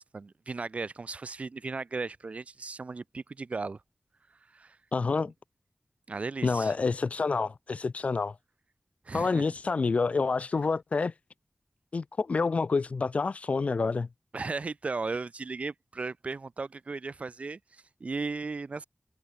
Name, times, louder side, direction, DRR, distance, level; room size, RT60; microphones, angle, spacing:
voice 1, 0.0-3.8 4.4-4.8 6.1-6.7 9.0-9.5 14.3-18.8, right 4 dB, 70° right, 2.6 m, -36 dB
voice 2, 4.9-5.3 6.4-8.4 9.1-11.1 11.9-14.1, left 4 dB, 70° left, 0.6 m, -28 dB
wide cardioid pair, 65°, 2 cm